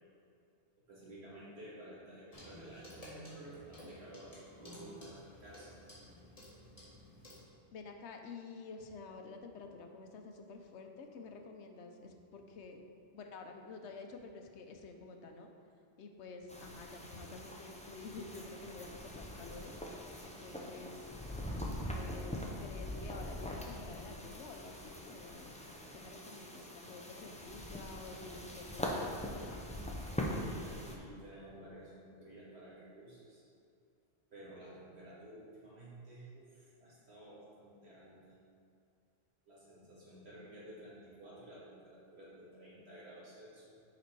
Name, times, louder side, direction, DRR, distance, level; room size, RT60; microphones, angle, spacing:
voice 1, 0.9-5.8 30.2-33.5 34.3-38.4 39.5-43.7, right 1 dB, 70° right, -8 dB, 2.3 m, -53 dB
Clock, 2.3-7.5, equal, 35° left, 1.9 m, -52 dB
voice 2, 7.7-12.8 13.1-15.5 16.0-19.8 20.2-21.1 21.9-25.5 25.9-29.6, left 3 dB, 85° left, 4 dB, 1.0 m, -50 dB
sound 1, 16.5-31.0, left 1 dB, 10° left, 0.5 m, -43 dB
6.8 x 5.1 x 4.6 m, 2.5 s
omnidirectional pair, 1.1 m